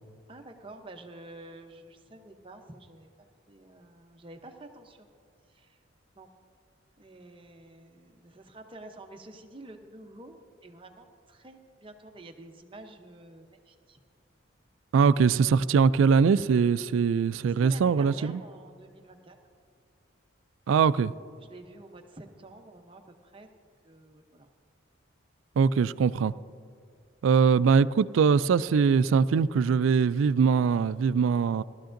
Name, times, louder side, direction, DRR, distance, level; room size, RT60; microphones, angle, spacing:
voice 1, 0.3-5.1 5.5-5.8 6.2-6.3 7.0-14.0 17.4-19.4 21.4-23.5 23.8-24.5, right 2 dB, 25° right, 0.7 m, -49 dB
voice 2, 14.9-18.4 20.7-21.1 25.6-26.3 27.2-31.6, right 6 dB, 75° right, 0.3 m, -22 dB
18.0 x 13.0 x 2.6 m
head